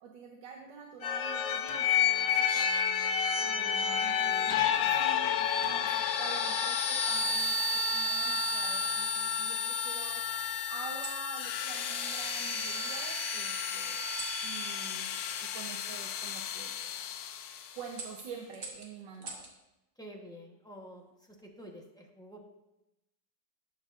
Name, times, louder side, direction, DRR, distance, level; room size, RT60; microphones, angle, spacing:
voice 1, 0.0-2.7 3.4-10.2 10.7-14.0 14.4-15.2 15.4-16.8 17.7-19.5, right 5 dB, 80° right, 1 dB, 1.5 m, -47 dB
sound 1, 1.0-17.7, left 6 dB, 85° left, 1.3 m, -31 dB
sound 2, 3.4-4.5 5.6-6.0 7.2-8.0 8.6-9.5 10.8-11.3 12.6-12.8 14.1-14.4 16.2-16.4 16.9-17.2 17.9-19.6 21.1-21.5, right 3 dB, 55° right, 1.9 m, -48 dB
voice 2, 20.0-22.5, equal, 5° left, 0 dB, 0.7 m, -49 dB
17.5 x 7.0 x 2.5 m, 0.94 s
omnidirectional pair, 2.0 m